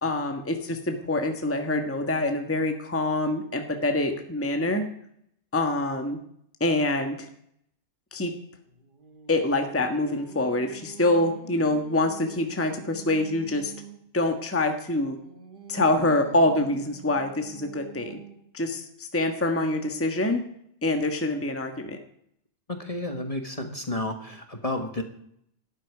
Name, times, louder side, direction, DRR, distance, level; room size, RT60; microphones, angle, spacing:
voice 1, 0.0-4.9 5.5-6.2 6.6-7.3 8.1-8.3 9.3-13.7 14.1-15.2 15.7-18.2 18.5-20.4 20.8-22.0, left 2 dB, 10° left, 5 dB, 1.3 m, -25 dB
Singing, 8.7-14.1 14.7-18.6, right 7 dB, 35° right, 1.4 m, -46 dB
voice 2, 22.7-25.0, left 1 dB, 25° left, 5 dB, 1.5 m, -31 dB
13.0 x 8.6 x 9.6 m, 0.70 s
omnidirectional pair, 1.5 m